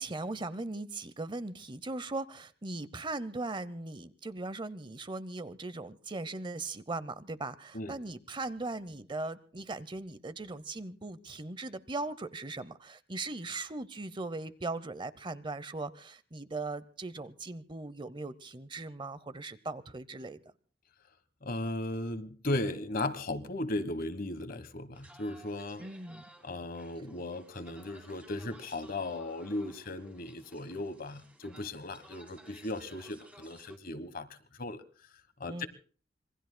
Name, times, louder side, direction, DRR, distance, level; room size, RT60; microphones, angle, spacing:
voice 1, 0.0-20.4 25.8-26.2 35.5-35.7, right 2 dB, 25° right, 15 dB, 0.7 m, -39 dB
voice 2, 21.4-25.8 26.4-34.8 35.4-35.7, left 2 dB, 50° left, 14 dB, 1.3 m, -36 dB
sound 1, 24.9-33.8, right 1 dB, 5° right, 2.8 m, -57 dB
26.5 x 22.0 x 2.2 m, 0.42 s
head